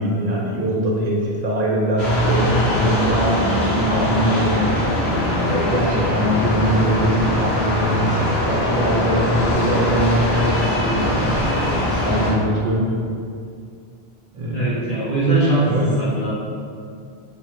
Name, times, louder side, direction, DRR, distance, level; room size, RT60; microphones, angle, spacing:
voice 1, 0.0-4.8 5.4-8.2 8.5-11.3 11.9-13.0 14.3-14.8 15.7-16.0, equal, 45° right, -4 dB, 0.7 m, -22 dB
sound 1, 2.0-12.3, left 1 dB, 90° left, 1.0 m, -21 dB
Bowed string instrument, 2.8-5.9 6.2-6.4 6.8-6.9 7.1-9.0 9.3-10.2 10.8-11.4, right 1 dB, 15° right, 1.0 m, -33 dB
voice 2, 14.5-16.3, right 2 dB, 55° left, -8 dB, 1.2 m, -20 dB
3.6 x 2.9 x 3.0 m, 2.3 s
omnidirectional pair, 1.1 m